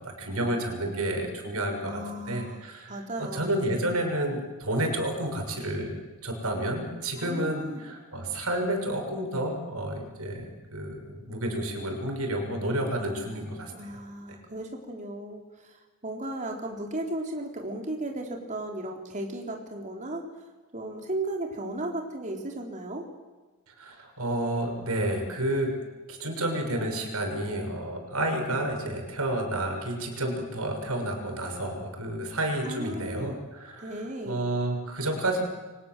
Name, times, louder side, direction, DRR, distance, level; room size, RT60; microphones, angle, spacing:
voice 1, 0.0-2.0 2.3-13.7 23.8-25.7 26.1-35.4, right 1 dB, 90° right, 4 dB, 6.4 m, -30 dB
voice 2, 1.9-2.6 2.9-3.5 7.2-7.8 13.7-20.2 20.7-23.0 32.7-33.4 33.8-34.4, right 1 dB, 35° right, 2 dB, 3.9 m, -35 dB
29.5 x 24.5 x 7.6 m, 1.3 s
head